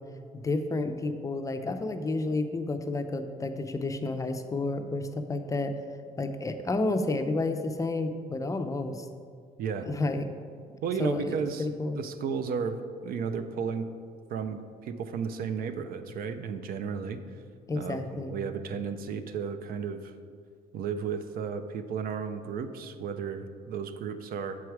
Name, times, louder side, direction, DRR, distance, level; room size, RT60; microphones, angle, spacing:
voice 1, 0.3-5.8 6.2-9.1 9.8-10.3 11.0-12.0 17.7-18.4, left 2 dB, 20° left, 7 dB, 0.5 m, -30 dB
voice 2, 10.8-11.7 12.0-13.9 14.3-17.2 17.8-20.1 20.7-24.6, right 6 dB, 60° right, 10 dB, 0.5 m, -33 dB
7.2 x 4.7 x 4.7 m, 2.1 s
cardioid pair, 110°, 17 cm